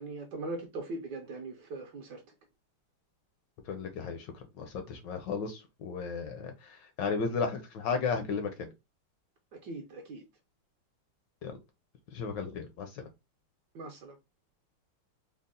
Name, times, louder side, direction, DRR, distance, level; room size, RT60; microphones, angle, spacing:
voice 1, 0.0-2.2 9.5-10.2 13.7-14.2, right 2 dB, 70° right, 1.0 m, -40 dB
voice 2, 3.7-4.3 4.6-6.5 7.0-8.5 11.4-11.6 12.1-13.0, left 5 dB, 70° left, 1.1 m, -34 dB
4.0 x 2.0 x 3.7 m
omnidirectional pair, 2.3 m